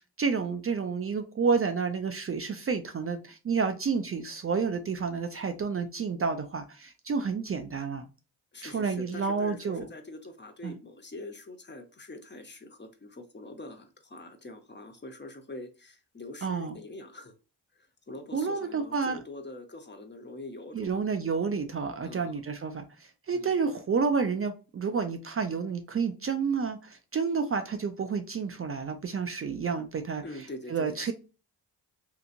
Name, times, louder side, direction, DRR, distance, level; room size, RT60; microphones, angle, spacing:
voice 1, 0.2-8.0 8.6-9.9 10.6-10.7 16.4-16.8 18.3-19.2 20.7-30.2 30.7-31.1, right 5 dB, 35° right, 7 dB, 0.4 m, -30 dB
voice 2, 8.5-17.3 17.8-20.9 22.0-22.3 23.3-23.5 30.2-31.1, left 2 dB, 25° left, 6 dB, 0.7 m, -44 dB
2.9 x 2.5 x 2.4 m, 0.32 s
cardioid pair, 55°, 41 cm